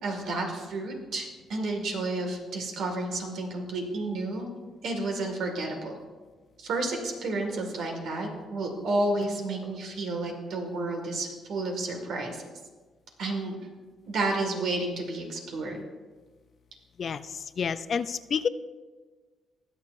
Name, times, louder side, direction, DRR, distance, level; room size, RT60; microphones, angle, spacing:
voice 1, 0.0-4.5 4.8-6.0 6.6-12.4 13.2-13.6 14.1-15.8, right 2 dB, 75° right, 2 dB, 2.1 m, -31 dB
voice 2, 17.0-18.5, left 6 dB, 50° left, 13 dB, 0.4 m, -29 dB
21.0 x 7.1 x 2.6 m, 1.4 s
cardioid pair, 90°, 0 cm